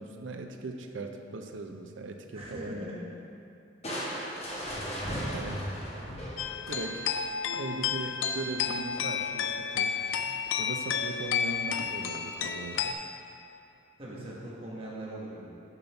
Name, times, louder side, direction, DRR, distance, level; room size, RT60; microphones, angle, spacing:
voice 1, 0.0-2.9 5.3-5.6 6.7-7.1 7.5-13.0, right 2 dB, 70° right, 5 dB, 0.5 m, -39 dB
voice 2, 2.3-3.1 14.0-15.4, right 1 dB, 30° right, -6 dB, 1.4 m, -40 dB
Crushing, 3.8-7.2, equal, 35° left, 1.2 m, -36 dB
sound 1, 6.4-12.9, left 7 dB, 80° left, 0.4 m, -31 dB
6.8 x 4.2 x 5.7 m, 2.6 s
head